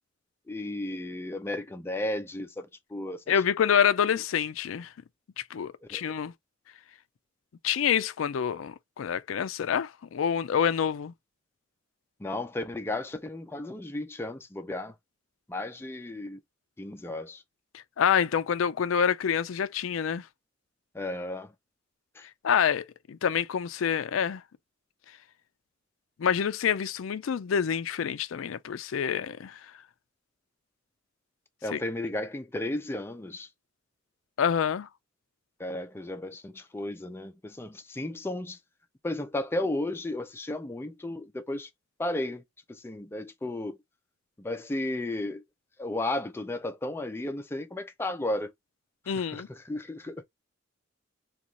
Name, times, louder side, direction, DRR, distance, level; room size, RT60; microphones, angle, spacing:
voice 1, 0.5-3.2 5.9-6.0 12.2-15.0 15.5-16.4 16.8-17.4 20.9-21.5 22.2-22.3 31.6-33.5 35.6-38.6 39.0-41.7 42.0-42.4 42.7-43.8 44.4-45.4 45.8-48.5 49.1-50.2, left 1 dB, 10° left, 0.4 m, -34 dB
voice 2, 3.3-4.9 5.5-6.3 7.6-11.1 18.0-20.2 22.4-24.4 26.2-29.6 31.7-31.8 34.4-34.9 49.1-49.5, left 7 dB, 85° left, 0.4 m, -27 dB
2.9 x 2.3 x 3.7 m
head